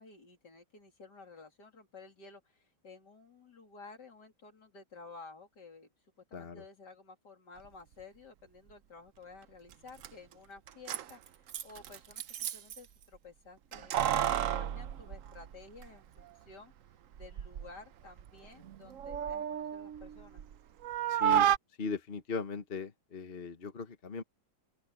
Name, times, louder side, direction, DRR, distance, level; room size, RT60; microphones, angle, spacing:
voice 1, 0.0-5.9 6.3-16.7 17.2-20.4, left 4 dB, 55° left, 3.6 m, -53 dB
voice 2, 6.3-6.6 21.1-21.5 21.8-24.2, left 4 dB, 35° left, 1.2 m, -38 dB
Keys jangling, 9.7-9.8 10.0-10.1 10.7-12.8 13.7-15.9 16.2-16.3 17.1-17.7 18.1-20.5 20.8-21.6, right 10 dB, 80° right, 0.7 m, -32 dB
open air
omnidirectional pair, 2.3 m